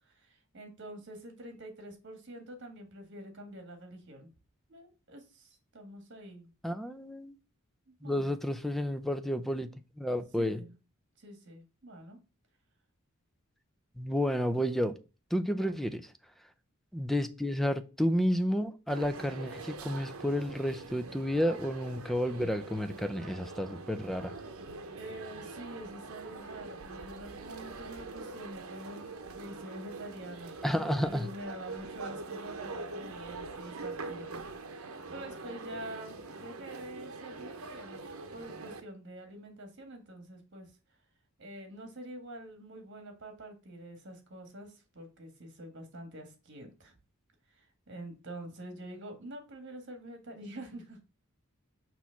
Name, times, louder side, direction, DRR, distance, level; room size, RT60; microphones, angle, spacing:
voice 1, 0.1-4.3 4.7-6.5 7.9-8.4 10.4-10.7 11.2-12.2 15.6-15.7 25.0-29.0 29.3-30.6 31.0-34.5 34.7-38.0 38.3-40.7 41.4-46.9 47.5-51.0, right 1 dB, 55° right, 1.7 m, -46 dB
voice 2, 6.6-7.3 8.0-9.7 10.0-10.6 14.0-14.9 15.3-16.0 16.9-24.3 30.6-31.3, equal, ahead, 0.5 m, -31 dB
sound 1, 18.9-38.8, right 3 dB, 80° right, 0.9 m, -44 dB
6.2 x 3.1 x 5.7 m
head